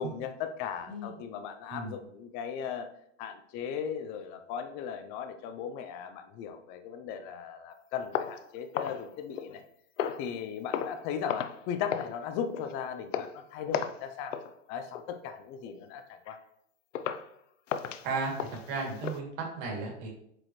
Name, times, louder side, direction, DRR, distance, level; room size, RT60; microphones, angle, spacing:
voice 1, 0.0-2.9 3.2-9.6 10.2-14.4 14.7-16.4, left 7 dB, 30° left, 8 dB, 0.5 m, -37 dB
sound 1, 8.1-9.6 10.0-10.3 10.7-11.0 11.3-11.6 11.9-12.2 12.5-12.7 13.1-13.4 13.7-14.0 14.3-14.5 14.9-15.2 15.7-15.8 16.3-16.4 16.9-17.3 17.7-19.2, left 9 dB, 90° left, 0.6 m, -35 dB
voice 2, 18.0-20.1, right 3 dB, 45° right, -1 dB, 2.6 m, -35 dB
7.6 x 4.7 x 3.1 m, 0.72 s
hypercardioid pair, 135°, 36 cm